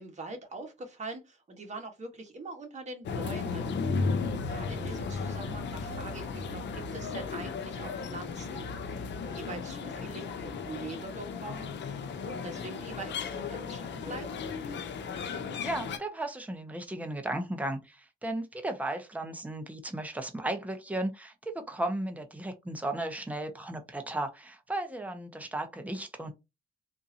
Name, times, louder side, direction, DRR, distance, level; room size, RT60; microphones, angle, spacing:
voice 1, 0.0-4.2 4.5-11.7 12.2-14.3, right 3 dB, 35° right, 1.4 m, -43 dB
sound 1, 3.0-16.0, left 4 dB, 65° left, 0.7 m, -35 dB
voice 2, 15.6-26.3, right 1 dB, 5° right, 0.8 m, -35 dB
3.7 x 2.6 x 2.8 m
cardioid pair, 90°, 20 cm